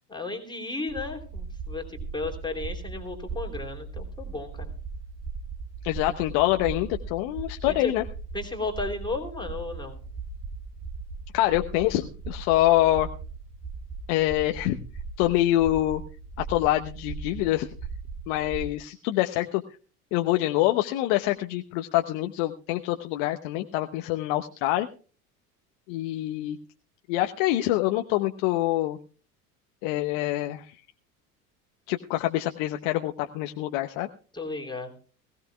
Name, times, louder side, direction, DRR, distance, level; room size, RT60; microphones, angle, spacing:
voice 1, 0.1-4.7 7.7-7.9 8.3-10.0 34.3-34.9, left 3 dB, 10° left, 1 dB, 3.0 m, -34 dB
sound 1, 0.9-18.7, right 4 dB, 25° right, 2.3 m, -38 dB
voice 2, 5.8-8.0 11.3-13.1 14.1-14.8 15.2-16.0 16.4-17.7 18.3-19.6 20.1-24.9 25.9-26.6 27.1-29.0 29.8-30.8 31.9-34.1, left 15 dB, 55° left, 6 dB, 1.0 m, -25 dB
20.5 x 16.0 x 2.3 m, 0.37 s
hypercardioid pair, 75°, 46 cm